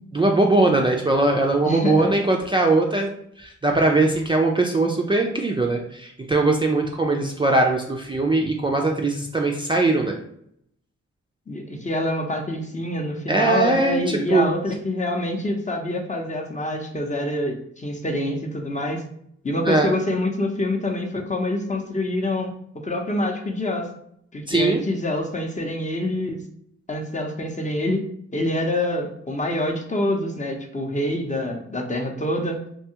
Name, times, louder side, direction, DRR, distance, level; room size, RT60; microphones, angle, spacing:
voice 1, 0.1-3.1 3.4-10.2 13.3-14.5 19.6-19.9 24.5-24.8, right 2 dB, 15° right, 0 dB, 0.4 m, -20 dB
voice 2, 1.6-2.1 11.5-19.0 19.4-22.5 22.8-23.9 24.3-26.4 26.9-28.0 28.3-32.6, left 1 dB, 25° left, 1 dB, 0.7 m, -26 dB
2.6 x 2.3 x 2.8 m, 0.69 s
supercardioid pair, 45°, 29 cm